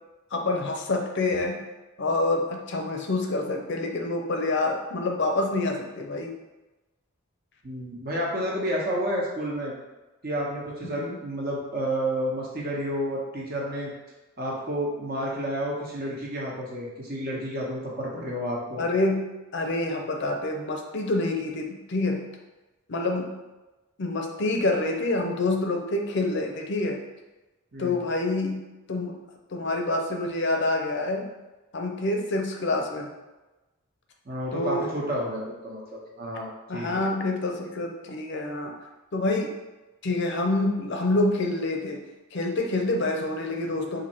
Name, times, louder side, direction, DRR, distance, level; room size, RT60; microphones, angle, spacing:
voice 1, 0.3-1.6 2.0-6.3 10.8-11.2 18.8-19.3 19.5-22.2 22.9-23.3 24.0-27.0 27.8-28.6 28.9-29.2 29.5-31.3 31.7-33.1 34.5-34.9 36.7-38.7 39.1-39.5 40.0-42.0 42.3-44.0, left 2 dB, 55° left, 2 dB, 0.5 m, -27 dB
voice 2, 7.6-9.7 10.2-13.9 14.4-18.8 27.7-28.0 34.2-37.0, equal, 45° right, -3 dB, 1.0 m, -30 dB
4.2 x 2.6 x 4.3 m, 1.1 s
head